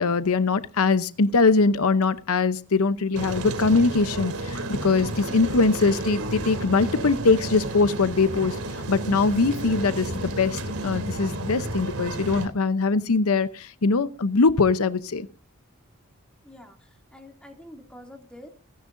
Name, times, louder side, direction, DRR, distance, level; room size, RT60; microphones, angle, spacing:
voice 1, 0.0-8.6 8.9-10.1 10.4-15.3, left 4 dB, 80° left, 0.8 m, -22 dB
sound 1, 3.1-12.5, right 2 dB, 80° right, 3.2 m, -32 dB
sound 2, 4.7-7.7 8.1-11.1, equal, 55° right, 5.4 m, -41 dB
voice 2, 16.4-18.5, left 1 dB, 5° left, 2.7 m, -46 dB
28.0 x 10.5 x 2.6 m
head